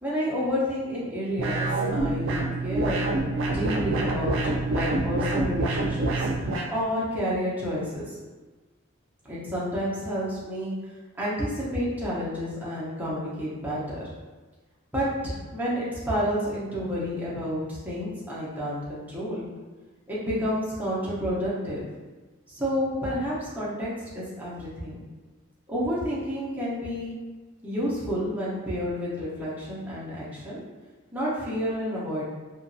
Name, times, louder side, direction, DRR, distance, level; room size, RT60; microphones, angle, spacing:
voice 1, 0.0-3.1 3.5-6.3 6.7-8.2 9.2-10.8 11.2-14.1 14.9-19.5 20.1-21.9 22.5-25.0 25.7-27.1 27.6-30.6 31.1-32.2, equal, 10° right, -8 dB, 0.7 m, -30 dB
sound 1, 1.4-6.7, right 2 dB, 65° right, 0.4 m, -26 dB
2.8 x 2.5 x 2.6 m, 1.3 s
head